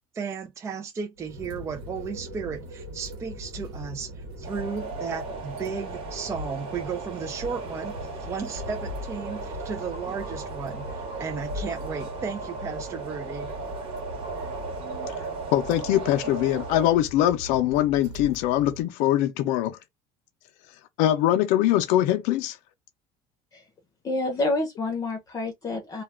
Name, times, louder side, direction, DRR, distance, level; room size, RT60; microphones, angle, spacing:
voice 1, 0.1-13.5, right 6 dB, 20° right, 0.4 m, -34 dB
sound 1, 1.2-18.8, left 1 dB, 80° right, 1.1 m, -40 dB
sound 2, 4.4-16.9, right 4 dB, 50° right, 1.2 m, -37 dB
voice 2, 15.1-19.8 21.0-22.6, left 13 dB, 75° left, 0.5 m, -23 dB
voice 3, 24.0-26.0, left 2 dB, 30° left, 0.7 m, -28 dB
2.3 x 2.2 x 3.3 m
cardioid pair, 130°, 13 cm